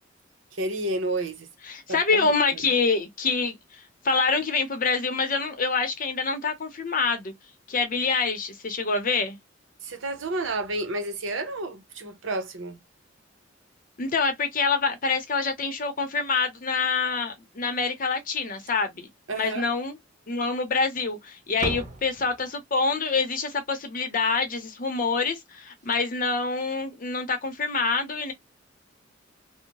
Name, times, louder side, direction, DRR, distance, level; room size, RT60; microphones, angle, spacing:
voice 1, 0.5-1.5 1.9-2.3 9.8-12.8 19.3-19.7, right 2 dB, 80° right, 0.8 m, -30 dB
voice 2, 1.7-3.6 4.0-7.3 7.7-9.4 14.0-20.0 20.3-28.3, left 4 dB, 45° left, 0.7 m, -26 dB
Slam, 18.4-19.1 19.3-19.5 19.9-20.0 20.8-21.2 21.4-22.7 25.4-25.5 25.7-26.0 27.5-27.6, right 2 dB, 40° right, 0.5 m, -38 dB
2.7 x 2.1 x 2.9 m
head